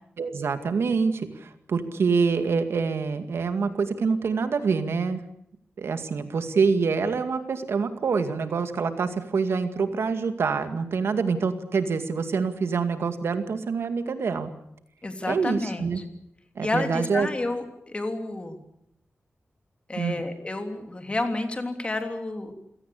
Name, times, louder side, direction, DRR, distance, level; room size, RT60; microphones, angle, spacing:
voice 1, 0.2-5.2 5.8-14.5 15.3-16.0 16.6-17.3 20.0-20.2, right 5 dB, 80° right, 8 dB, 2.2 m, -26 dB
voice 2, 15.0-16.0 16.6-18.6 19.9-22.5, left 2 dB, 25° left, 6 dB, 3.2 m, -30 dB
28.0 x 17.5 x 8.5 m, 0.77 s
wide cardioid pair, 120°, 4 cm